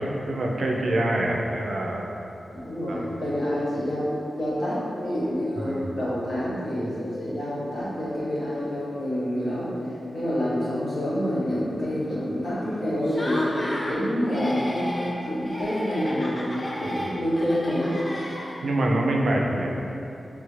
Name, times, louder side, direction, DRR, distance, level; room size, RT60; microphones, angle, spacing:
voice 1, 0.0-2.0 2.9-3.1 5.6-5.9 16.8-17.1 18.6-19.8, right 1 dB, 65° right, 0 dB, 0.3 m, -25 dB
voice 2, 2.6-18.0, equal, 65° left, -10 dB, 1.0 m, -27 dB
Laughter, 13.0-14.0 14.3-15.2 15.4-18.8, equal, 20° left, 0.4 m, -33 dB
3.4 x 2.4 x 3.0 m, 2.9 s
wide cardioid pair, 165°, 0 cm